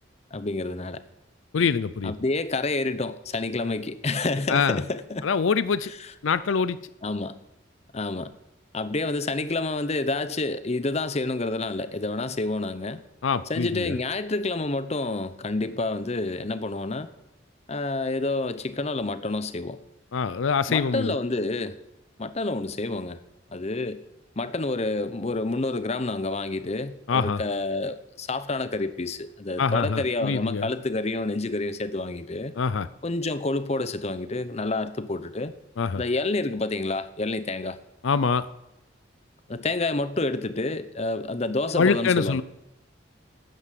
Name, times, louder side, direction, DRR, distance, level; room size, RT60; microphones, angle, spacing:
voice 1, 0.3-1.0 2.0-5.3 6.0-6.1 7.0-7.3 7.9-8.3 8.7-13.0 13.5-17.1 17.7-19.8 20.7-21.8 22.2-23.2 23.5-24.0 24.4-32.5 33.0-35.5 36.0-37.8 39.5-42.4, left 2 dB, 35° left, 0.8 m, -28 dB
voice 2, 1.5-2.1 4.5-4.8 5.2-5.9 6.2-6.8 13.2-13.9 20.1-21.1 27.1-27.4 29.6-30.7 32.6-32.9 35.8-36.0 38.0-38.5 41.8-42.4, left 5 dB, 85° left, 0.5 m, -24 dB
12.5 x 9.7 x 7.6 m
head